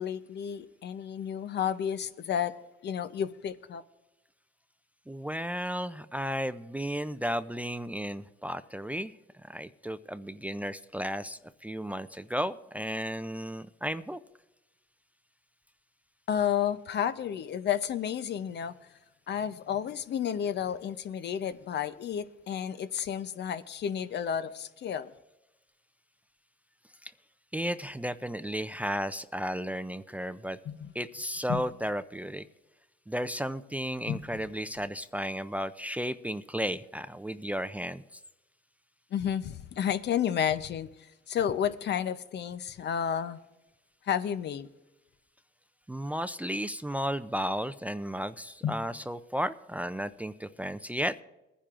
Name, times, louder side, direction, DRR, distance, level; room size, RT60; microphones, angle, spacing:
voice 1, 0.0-2.5 2.8-3.8 16.3-18.7 19.3-25.1 30.7-30.9 31.5-31.6 34.1-34.4 39.1-40.9 41.3-43.4 44.1-44.7 48.6-48.8, left 9 dB, 60° left, 0.6 m, -31 dB
voice 2, 5.1-9.1 9.4-14.2 27.0-27.1 27.5-30.6 30.9-32.4 33.1-38.0 45.9-51.1, equal, 5° right, 0.4 m, -34 dB
21.5 x 10.0 x 2.5 m
cardioid pair, 90°, 20 cm